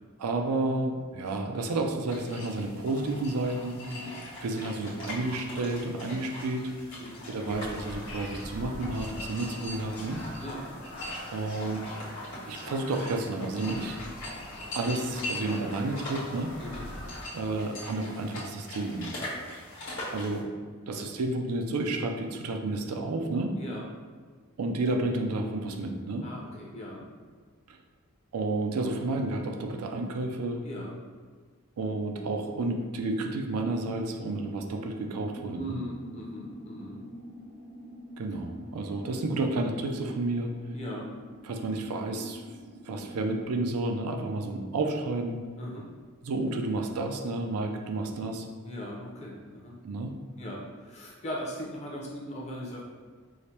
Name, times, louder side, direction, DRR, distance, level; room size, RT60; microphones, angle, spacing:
voice 1, 0.2-3.8 4.4-6.7 7.3-10.2 11.3-11.8 12.5-14.0 14.7-16.5 17.3-19.1 20.1-20.5 20.9-23.5 24.6-26.3 27.7-27.8 28.3-30.6 31.8-35.8 38.2-40.5 41.4-42.5 42.8-45.4 46.2-48.5 49.8-50.1, right 2 dB, 90° right, 4 dB, 0.4 m, -31 dB
sound 1, 2.1-20.4, left 1 dB, 60° left, 1.2 m, -41 dB
Bird vocalization bird call bird song, 7.5-17.3, left 1 dB, 85° left, 1.2 m, -43 dB
voice 2, 10.4-10.7 16.6-16.9 20.9-21.0 23.6-23.9 26.2-27.1 30.6-31.0 35.5-37.0 40.7-41.1 45.6-45.9 48.6-49.7 50.4-52.8, equal, 30° left, -3 dB, 0.7 m, -39 dB
sound 2, 33.4-43.4, equal, 25° right, 0.5 m, -46 dB
4.9 x 2.1 x 2.8 m, 1.5 s
head